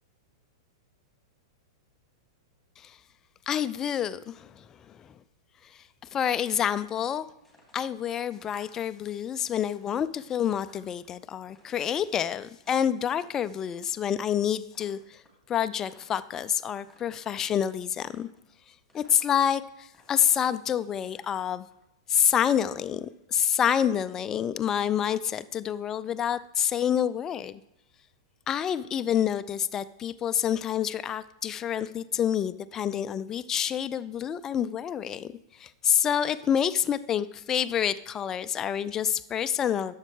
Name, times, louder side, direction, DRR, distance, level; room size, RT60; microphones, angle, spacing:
voice 1, 3.5-5.2 6.1-7.3 7.7-15.2 15.5-18.3 18.9-21.7 22.1-27.6 28.5-39.9, left 9 dB, 25° left, 15 dB, 0.3 m, -28 dB
sound 1, 6.4-7.1 7.4-9.0 9.3-11.1 11.5-13.9 14.1-14.4 14.7-16.4 16.7-17.5 18.0-18.6 18.9-19.6 19.9-21.7, left 1 dB, ahead, 2.7 m, -61 dB
11.5 x 7.3 x 3.3 m, 0.87 s
figure-of-eight pair, 100°, 2 cm